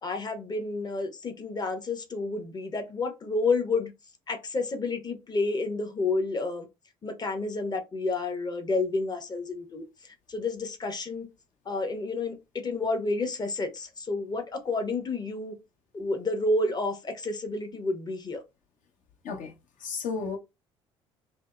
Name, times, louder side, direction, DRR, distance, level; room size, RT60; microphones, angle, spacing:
voice 1, 0.0-3.9 4.3-6.7 7.0-11.3 11.7-15.6 15.9-18.4, left 3 dB, 30° left, 0.7 m, -30 dB
voice 2, 19.8-20.4, left 5 dB, 60° left, 0.8 m, -32 dB
2.6 x 2.0 x 2.4 m
hypercardioid pair, 60°, 15 cm